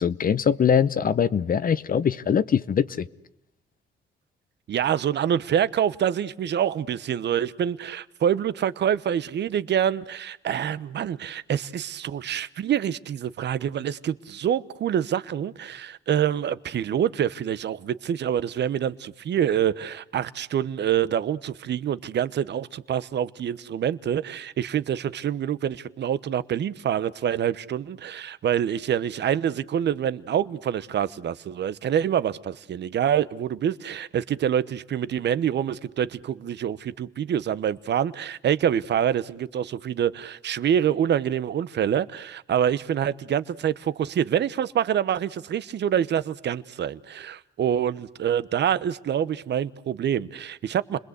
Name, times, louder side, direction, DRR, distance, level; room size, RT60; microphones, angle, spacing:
voice 1, 0.0-3.1, left 7 dB, 45° left, 0.9 m, -22 dB
voice 2, 4.7-51.0, right 9 dB, 60° right, 1.1 m, -26 dB
29.5 x 21.5 x 8.2 m
cardioid pair, 90°, 20 cm